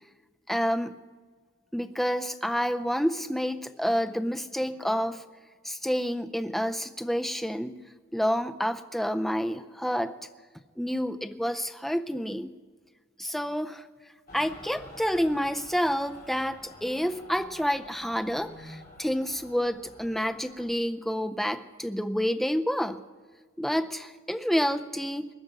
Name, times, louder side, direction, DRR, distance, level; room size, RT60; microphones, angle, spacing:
voice 1, 0.5-0.9 1.7-5.2 5.6-7.8 8.1-10.1 10.8-12.5 13.2-13.9 14.3-23.0 23.6-25.3, equal, ahead, 8 dB, 0.5 m, -29 dB
Mechanical fan, 14.3-20.7, left 1 dB, 45° left, 3.5 m, -49 dB
21.0 x 11.5 x 5.3 m, 1.5 s
head